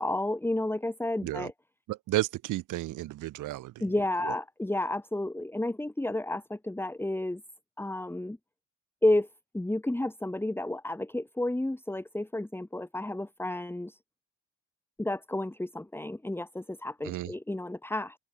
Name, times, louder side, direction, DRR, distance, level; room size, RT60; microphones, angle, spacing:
voice 1, 0.0-1.5 3.8-7.4 7.8-8.4 9.0-9.3 9.5-14.0 15.0-18.2, left 1 dB, 5° left, 2.4 m, -31 dB
voice 2, 1.9-3.9 4.2-4.3 17.0-17.3, right 16 dB, 90° right, 7.8 m, -32 dB
open air
cardioid pair, 90°, 30 cm